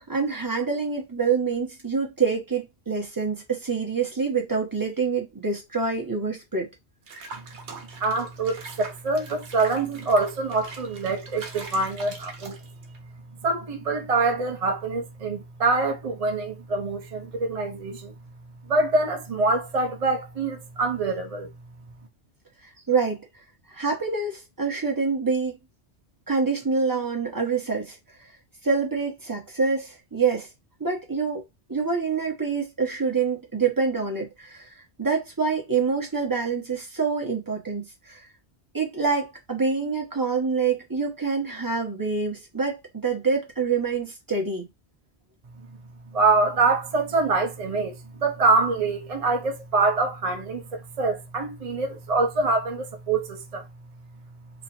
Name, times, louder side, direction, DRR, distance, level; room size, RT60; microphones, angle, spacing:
voice 1, 0.1-6.7 22.9-23.3 23.7-25.6 26.3-28.0 28.6-30.5 30.8-31.4 31.7-34.7 35.0-38.2 38.7-44.7, right 5 dB, 20° right, 1.1 m, -26 dB
Water / Bathtub (filling or washing), 7.1-13.0, right 4 dB, 85° right, 1.1 m, -43 dB
voice 2, 8.0-12.6 13.4-18.1 18.7-21.5 46.1-53.6, right 3 dB, 40° right, 0.6 m, -25 dB
3.2 x 2.4 x 4.2 m
omnidirectional pair, 1.1 m